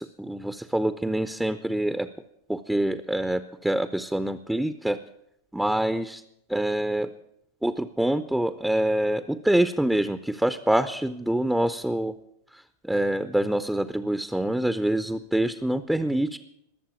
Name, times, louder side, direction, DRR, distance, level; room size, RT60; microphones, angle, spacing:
voice 1, 0.0-2.1 2.5-5.0 5.5-6.2 6.5-7.1 7.6-12.1 12.5-16.4, right 1 dB, 5° right, 11 dB, 0.6 m, -26 dB
20.5 x 7.4 x 8.6 m, 0.77 s
figure-of-eight pair, 90°, 0 cm